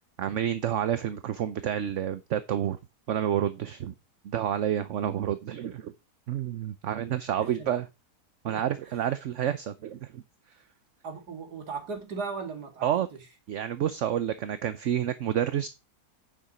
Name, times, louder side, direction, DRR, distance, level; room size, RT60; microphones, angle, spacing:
voice 1, 0.2-2.8 3.1-3.9 4.2-5.9 6.3-7.9 8.4-10.2 12.8-13.1 13.5-15.7, right 10 dB, 60° right, 0.9 m, -29 dB
voice 2, 8.5-9.0 11.0-13.2, right 4 dB, 85° right, 2.6 m, -38 dB
8.9 x 6.9 x 5.0 m
omnidirectional pair, 1.7 m